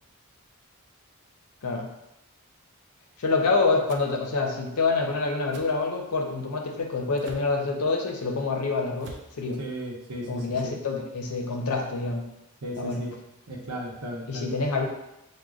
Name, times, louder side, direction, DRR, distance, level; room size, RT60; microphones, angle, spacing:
voice 1, 3.2-9.6 10.3-12.3 12.8-13.0 14.3-14.9, left 3 dB, 80° left, 2 dB, 0.6 m, -27 dB
sound 1, 3.9-4.1 5.5-5.7 7.2-7.5 9.0-9.3, right 3 dB, 55° right, 0.4 m, -44 dB
voice 2, 9.6-10.7 12.6-13.1 13.5-14.5, right 1 dB, 90° right, -1 dB, 0.8 m, -35 dB
6.1 x 2.2 x 2.3 m, 0.89 s
head